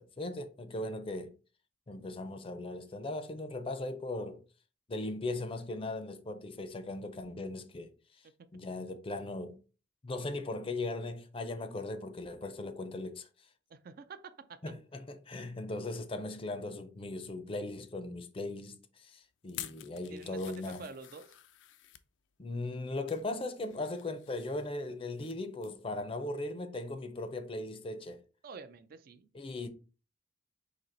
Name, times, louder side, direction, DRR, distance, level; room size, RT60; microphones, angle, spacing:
voice 1, 0.0-1.3 1.9-4.4 4.9-7.9 8.5-9.6 10.0-13.3 14.6-20.9 22.4-28.2 29.3-29.7, left 2 dB, 30° left, 0.5 m, -38 dB
voice 2, 13.7-14.6 20.1-21.4 28.4-29.3, right 4 dB, 50° right, 0.4 m, -48 dB
sound 1, 19.5-22.1 22.7-23.3 23.6-25.4 25.6-25.8 26.2-26.3, left 12 dB, 85° left, 0.4 m, -49 dB
4.3 x 2.8 x 3.8 m
head